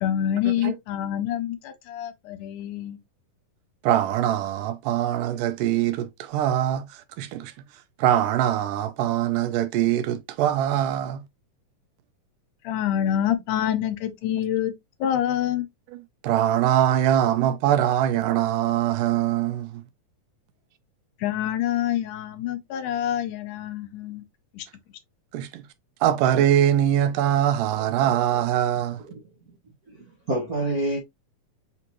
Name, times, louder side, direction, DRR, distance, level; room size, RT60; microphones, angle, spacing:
voice 1, 0.0-3.0 12.6-14.7 15.0-15.7 21.2-24.2 24.5-24.7, left 11 dB, 85° left, 2.2 m, -26 dB
voice 2, 3.8-7.5 8.0-11.2 15.9-19.8 25.3-25.7 26.0-29.0, right 11 dB, 85° right, 2.3 m, -23 dB
voice 3, 29.9-31.0, right 1 dB, 55° right, 0.9 m, -27 dB
5.5 x 3.0 x 2.6 m
omnidirectional pair, 3.7 m